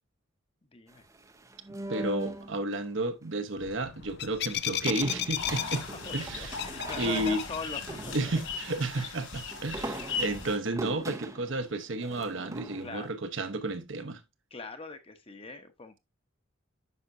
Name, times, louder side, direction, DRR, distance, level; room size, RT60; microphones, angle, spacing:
voice 1, 0.7-1.1 5.6-8.5 9.0-9.2 10.1-10.2 12.8-13.1 14.5-16.0, left 3 dB, 30° left, 1.0 m, -42 dB
sound 1, 0.9-2.8 4.9-8.7 9.5-13.1, right 1 dB, 15° right, 0.6 m, -41 dB
voice 2, 1.9-5.8 6.1-6.5 7.0-7.4 8.1-14.2, right 2 dB, 65° right, 1.0 m, -32 dB
sound 2, 3.6-8.5, left 11 dB, 55° left, 0.5 m, -36 dB
sound 3, 5.3-10.6, left 4 dB, 75° left, 4.2 m, -38 dB
9.6 x 5.8 x 2.6 m
head